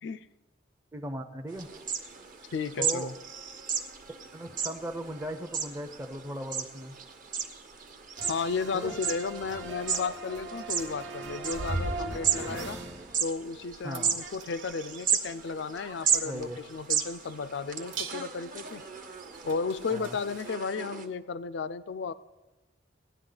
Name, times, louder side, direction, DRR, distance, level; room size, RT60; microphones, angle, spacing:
voice 1, 0.9-1.7 2.8-3.1 4.3-7.0 8.7-8.9 13.8-14.1 16.2-16.6 19.9-20.2, right 1 dB, 15° right, 5 dB, 0.6 m, -38 dB
sound 1, 1.5-21.1, right 7 dB, 45° right, 1.1 m, -35 dB
sound 2, 1.5-20.6, right 2 dB, 85° right, 0.9 m, -46 dB
voice 2, 2.5-3.1 8.3-12.8 13.2-18.8 19.4-22.1, left 5 dB, 70° left, 15 dB, 0.4 m, -34 dB
sound 3, 8.2-13.6 13.9-16.2, right 3 dB, 65° right, 1.1 m, -41 dB
17.5 x 10.0 x 3.9 m, 1.1 s
head